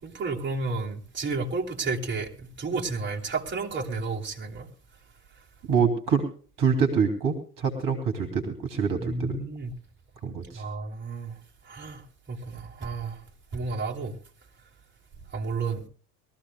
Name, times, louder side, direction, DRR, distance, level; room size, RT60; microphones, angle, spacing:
voice 1, 0.0-4.7 9.0-9.7 10.5-11.4 11.6-12.0 12.3-13.2 13.5-14.2 15.3-15.8, right 4 dB, 25° right, 3.4 m, -31 dB
voice 2, 5.7-6.2 6.6-9.4 10.2-10.6, right 6 dB, 45° right, 2.9 m, -25 dB
22.5 x 14.5 x 2.4 m
figure-of-eight pair, 65°, 46 cm